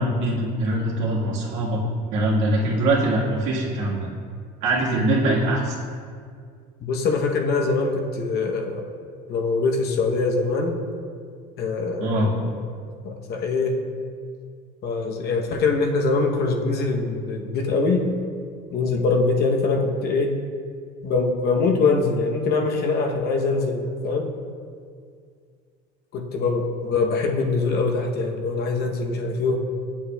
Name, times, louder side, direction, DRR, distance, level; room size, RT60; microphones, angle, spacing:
voice 1, 0.0-1.8 2.1-4.1 4.6-5.8 12.0-12.3, right 1 dB, 70° right, -5 dB, 1.7 m, -22 dB
voice 2, 6.8-8.8 9.3-10.8 11.6-12.7 13.0-13.8 14.8-18.2 18.7-20.4 21.0-24.3 26.1-29.6, left 3 dB, 55° left, 3 dB, 0.8 m, -23 dB
8.5 x 7.2 x 2.2 m, 2.1 s
supercardioid pair, 105°, 20 cm